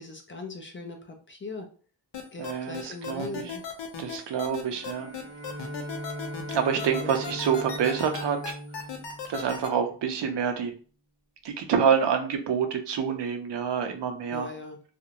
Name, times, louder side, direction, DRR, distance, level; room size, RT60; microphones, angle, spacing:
voice 1, 0.0-1.7 2.3-3.6 6.9-7.1 14.3-14.8, left 2 dB, 30° left, 3 dB, 0.5 m, -39 dB
sound 1, 2.1-9.7, left 7 dB, 65° left, 0.7 m, -36 dB
voice 2, 2.4-3.5 4.0-5.1 6.5-8.5 9.3-10.7 11.4-14.5, right 7 dB, 70° right, 5 dB, 0.6 m, -27 dB
Bowed string instrument, 4.7-10.2, equal, 25° right, 0.7 m, -39 dB
2.4 x 2.0 x 2.8 m, 0.40 s
cardioid pair, 70°, 45 cm